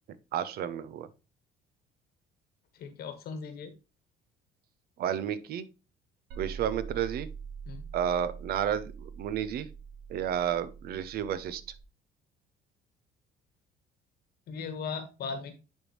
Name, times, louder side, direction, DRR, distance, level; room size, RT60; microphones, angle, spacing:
voice 1, 0.3-1.1 5.0-5.7 6.4-7.3 7.9-9.7 10.1-11.6, right 9 dB, 65° right, 15 dB, 0.7 m, -31 dB
voice 2, 2.7-3.7 7.6-7.9 14.5-15.5, left 5 dB, 65° left, 8 dB, 1.3 m, -38 dB
sound 1, 6.3-11.8, right 6 dB, 85° right, 0.9 m, -44 dB
10.5 x 3.6 x 3.0 m, 0.29 s
cardioid pair, 110°, 17 cm